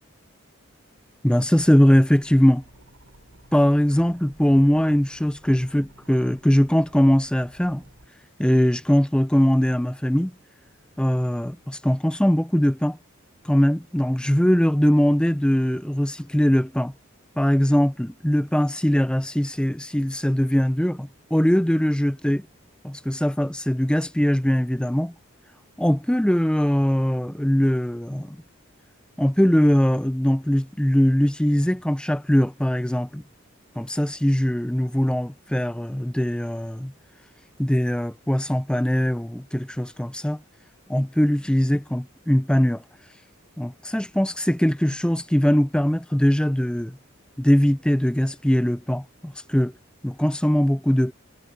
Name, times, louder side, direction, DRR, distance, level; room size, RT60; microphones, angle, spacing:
voice 1, 1.2-2.6 3.5-7.8 8.4-10.3 11.0-13.0 13.4-16.9 17.4-22.5 22.8-25.1 25.8-28.4 29.2-33.2 33.8-36.9 37.6-40.4 40.9-42.8 43.6-47.0 47.4-49.7 50.0-51.1, equal, 5° left, 0.5 m, -21 dB
sound 1, 1.6-8.1, right 1 dB, 85° right, 6.5 m, -53 dB
head